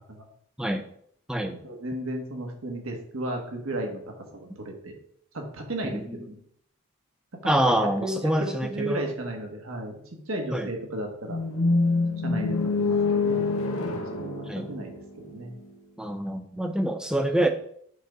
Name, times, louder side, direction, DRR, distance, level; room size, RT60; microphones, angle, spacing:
voice 1, 1.6-4.0 4.3-4.9 5.3-6.4 7.4-7.5 8.0-10.0 10.3-11.4 12.2-13.5 14.1-15.5, right 1 dB, 70° right, 2 dB, 1.5 m, -34 dB
voice 2, 5.8-6.2 7.5-9.1 10.5-10.7 14.5-14.7 16.0-17.5, right 1 dB, 5° right, 6 dB, 0.5 m, -26 dB
sound 1, 11.3-15.4, left 3 dB, 70° left, 0.9 m, -26 dB
8.7 x 3.6 x 3.9 m, 0.66 s
head